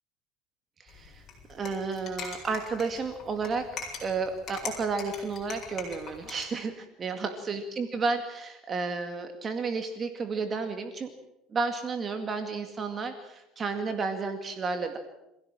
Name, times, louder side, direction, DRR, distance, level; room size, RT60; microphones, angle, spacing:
voice 1, 0.8-1.2 1.5-3.7 4.0-11.1 11.5-15.0, right 4 dB, 30° right, 7 dB, 2.1 m, -32 dB
sound 1, 0.9-6.4, left 5 dB, 40° left, 7.7 m, -42 dB
26.0 x 16.5 x 7.6 m, 0.88 s
cardioid pair, 125°, 0 cm